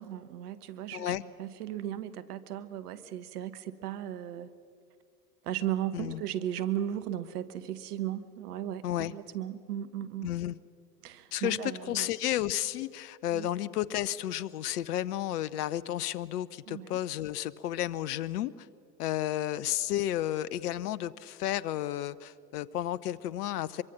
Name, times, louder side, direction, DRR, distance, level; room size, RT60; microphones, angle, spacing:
voice 1, 0.0-4.5 5.4-10.3 11.0-12.1 13.3-13.5 16.7-17.0, right 11 dB, 70° right, 14 dB, 1.3 m, -36 dB
voice 2, 0.9-1.2 5.9-6.2 8.8-9.1 10.2-10.6 11.3-18.7 19.0-23.8, left 13 dB, 75° left, 18 dB, 0.8 m, -32 dB
25.0 x 23.0 x 6.0 m, 2.4 s
hypercardioid pair, 85°, 48 cm